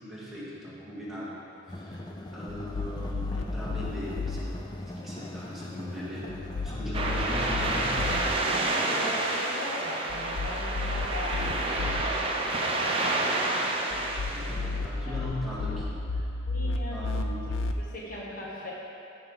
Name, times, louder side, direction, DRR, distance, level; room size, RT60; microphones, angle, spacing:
voice 1, 0.0-2.0 2.3-4.5 4.9-6.3 6.6-8.0 12.5-12.8 14.3-16.3 16.9-17.5, left 1 dB, ahead, -9 dB, 2.0 m, -39 dB
sound 1, 1.7-8.4, left 1 dB, 20° left, 0.5 m, -40 dB
sound 2, 2.5-4.4 6.3-8.2 10.1-12.0 13.9-17.7, left 3 dB, 80° left, 0.5 m, -33 dB
sound 3, 6.9-14.8, right 2 dB, 30° right, 0.8 m, -29 dB
voice 2, 8.6-11.6 14.4-14.6 15.0-15.2 16.5-17.4 17.8-18.7, left 1 dB, 45° left, -5 dB, 1.3 m, -39 dB
15.0 x 5.5 x 3.9 m, 2.7 s
head